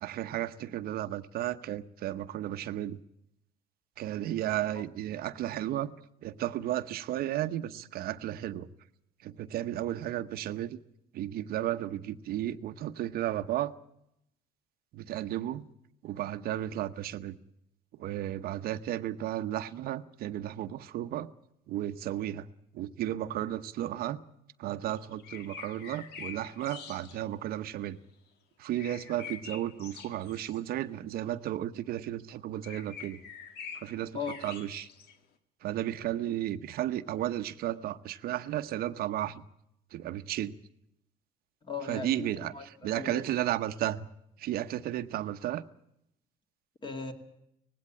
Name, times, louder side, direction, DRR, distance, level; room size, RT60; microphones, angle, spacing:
voice 1, 0.0-3.0 4.0-5.9 6.2-8.7 9.2-10.8 11.1-13.7 14.9-15.7 16.0-17.4 18.0-21.3 21.7-22.5 22.7-24.2 24.6-28.0 28.6-33.2 33.7-34.2 34.4-34.9 35.6-39.4 39.9-40.5 41.9-42.5 42.8-44.1 44.4-45.6, right 13 dB, 70° right, 10 dB, 0.9 m, -33 dB
sound 1, 24.8-27.2 28.7-30.6 31.3-31.4 32.2-32.3 32.6-35.2, left 7 dB, 85° left, 1.9 m, -46 dB
voice 2, 41.6-43.2 46.8-47.1, left 5 dB, 30° left, 6 dB, 2.1 m, -38 dB
19.0 x 16.0 x 8.6 m, 0.80 s
cardioid pair, 145°, 16 cm